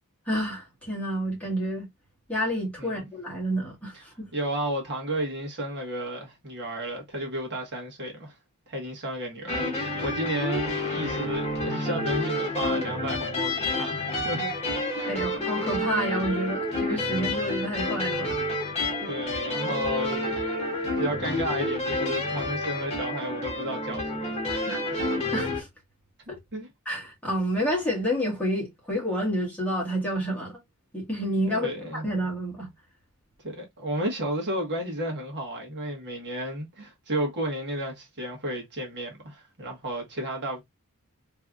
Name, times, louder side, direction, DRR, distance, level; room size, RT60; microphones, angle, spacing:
voice 1, 0.3-1.9 2.3-4.3 15.1-18.4 25.3-25.7 26.3-26.4 26.9-30.6 30.9-32.7, equal, 5° left, 2.0 m, -29 dB
voice 2, 3.9-8.3 8.7-14.5 14.9-15.2 19.0-20.4 20.7-25.0 26.5-26.7 31.5-32.0 33.4-40.6, right 1 dB, 50° right, 1.5 m, -32 dB
sound 1, 9.5-25.6, left 1 dB, 30° left, 1.6 m, -29 dB
3.5 x 3.3 x 2.5 m
head